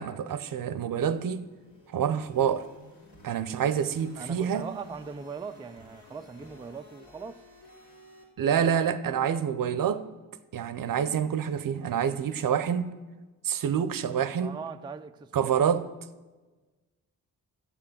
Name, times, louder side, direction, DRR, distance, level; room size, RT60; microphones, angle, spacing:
voice 1, 0.0-1.5 1.9-2.7 3.2-4.6 8.4-10.1 10.5-12.9 13.4-14.6 15.3-15.9, right 8 dB, 60° right, 0.7 m, -27 dB
sound 1, 1.0-8.2, left 2 dB, 75° left, 2.9 m, -53 dB
voice 2, 4.2-7.4 14.4-15.7, right 5 dB, 10° right, 0.3 m, -40 dB
7.1 x 6.8 x 7.1 m
supercardioid pair, 50°, 39 cm